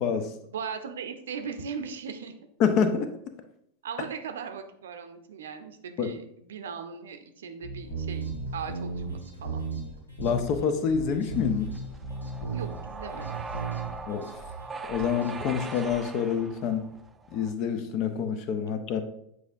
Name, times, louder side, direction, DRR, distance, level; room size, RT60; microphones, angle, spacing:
voice 1, 0.4-2.3 3.8-9.6 12.5-13.4, right 6 dB, 60° right, 8 dB, 0.6 m, -38 dB
voice 2, 2.6-3.2 6.0-6.1 10.2-11.7 14.1-14.3 14.9-16.9 17.3-19.0, left 7 dB, 40° left, 9 dB, 0.7 m, -27 dB
sound 1, 7.6-9.1 9.4-9.8 10.2-10.6 10.9-12.8 13.2-13.9, right 3 dB, 60° left, 1.6 m, -34 dB
sound 2, 7.8-16.0, right 1 dB, 85° left, 1.7 m, -46 dB
sound 3, 11.4-17.5, right 4 dB, 15° right, 0.4 m, -41 dB
8.1 x 4.7 x 2.6 m, 0.75 s
figure-of-eight pair, 90°, 0 cm